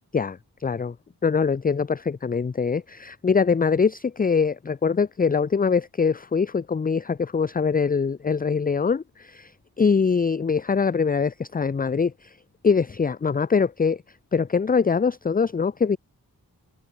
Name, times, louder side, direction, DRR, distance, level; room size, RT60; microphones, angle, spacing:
voice 1, 0.1-1.0 1.2-9.5 9.8-12.4 12.6-14.0 14.3-16.0, left 5 dB, 25° left, 0.4 m, -23 dB
wide cardioid pair, 45°, 40 cm